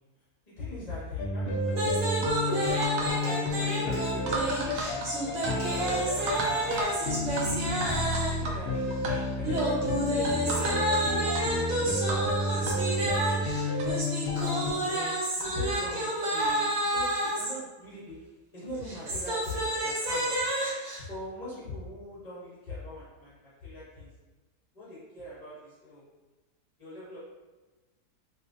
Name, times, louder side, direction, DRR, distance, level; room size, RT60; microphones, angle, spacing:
voice 1, 0.5-2.2 3.1-7.8 8.3-12.0 12.5-13.9 14.4-18.1 18.5-20.4 21.0-24.1 24.7-26.1 26.8-27.2, left 2 dB, 30° left, -9 dB, 0.8 m, -42 dB
sound 1, 1.2-14.7, left 1 dB, 85° left, 0.5 m, -31 dB
sound 2, 1.7-8.5 9.4-17.5 18.7-21.0, right 1 dB, 60° right, 1.3 m, -30 dB
sound 3, 2.2-2.4 2.8-3.2 3.5-3.7 4.3-5.6 5.9-6.0 6.3-6.9 7.4-7.5 7.8-8.6 8.9-9.1 9.6-9.7 10.2-11.0 11.3-11.4 12.1-12.3 12.7-12.8 13.5-13.6 13.8-13.9 14.4-14.5 15.4-15.5 16.4-16.6, right 3 dB, 85° right, 1.1 m, -35 dB
3.3 x 2.9 x 2.5 m, 1.2 s
omnidirectional pair, 1.6 m